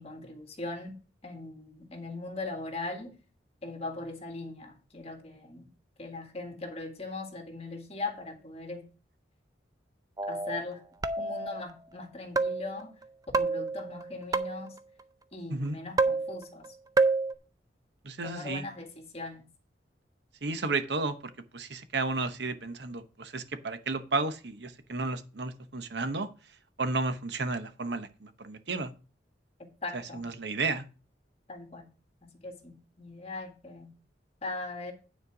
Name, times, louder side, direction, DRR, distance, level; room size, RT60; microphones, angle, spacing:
voice 1, 0.0-3.1 3.6-5.7 6.0-8.8 10.2-10.8 11.2-12.9 13.3-14.7 15.3-16.7 18.2-19.5 29.6-30.3 31.5-31.9 32.2-33.9 34.4-34.9, left 2 dB, 35° left, 1.7 m, -40 dB
sound 1, 10.2-10.6 11.0-11.6 12.4-12.8 13.3-14.8 16.0-16.7 17.0-17.3, right 3 dB, 20° right, 0.5 m, -28 dB
voice 2, 18.0-18.6 20.4-21.1 21.5-26.3 26.8-28.9 29.9-30.8, right 3 dB, 65° right, 0.9 m, -32 dB
9.6 x 4.4 x 6.0 m
head